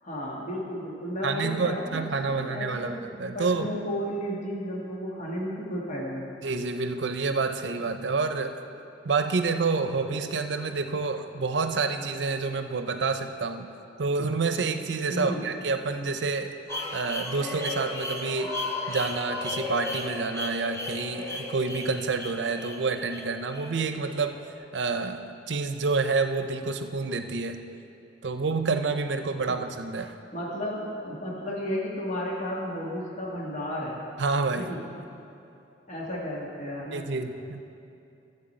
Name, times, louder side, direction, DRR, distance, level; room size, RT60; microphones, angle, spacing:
voice 1, 0.0-3.0 3.3-6.3 15.1-15.4 29.5-29.6 30.3-34.0 34.6-34.8 35.9-37.0, equal, 45° left, -4 dB, 1.6 m, -33 dB
voice 2, 1.2-3.7 6.4-8.5 9.0-13.7 14.0-16.5 16.9-18.5 18.9-24.4 24.7-27.6 28.2-30.1 34.2-34.7 36.9-37.6, right 4 dB, 75° right, 8 dB, 0.6 m, -28 dB
sound 1, 16.7-24.5, left 2 dB, 15° left, 1.0 m, -35 dB
13.0 x 7.9 x 4.3 m, 2.7 s
head